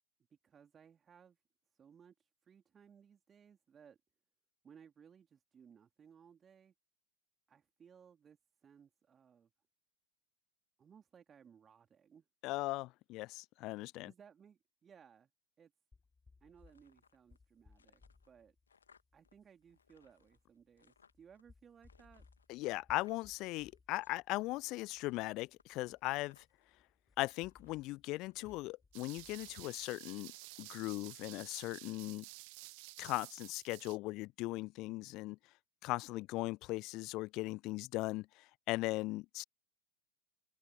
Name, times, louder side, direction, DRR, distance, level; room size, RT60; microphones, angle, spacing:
voice 1, 0.3-1.4 1.7-4.0 4.6-6.7 7.5-9.5 10.8-12.3 13.8-15.3 15.6-15.7 16.4-18.5 19.1-22.2, right 7 dB, 20° right, 3.2 m, -62 dB
voice 2, 12.4-14.1 22.5-26.4 27.2-30.3 30.6-32.2 33.0-35.4 35.8-39.4, left 20 dB, 40° left, 0.4 m, -39 dB
sound 1, 15.9-29.9, left 4 dB, 10° left, 3.8 m, -67 dB
sound 2, 16.6-17.4 17.7-19.3 19.6-21.4 21.8-24.2 24.5-24.8 25.0-26.7 27.1-27.8 28.3-28.9 29.2-30.0 30.3-32.1, left 6 dB, 70° left, 1.6 m, -69 dB
sound 3, 28.9-34.0, right 37 dB, 45° right, 1.1 m, -52 dB
figure-of-eight pair, 90°, 0 cm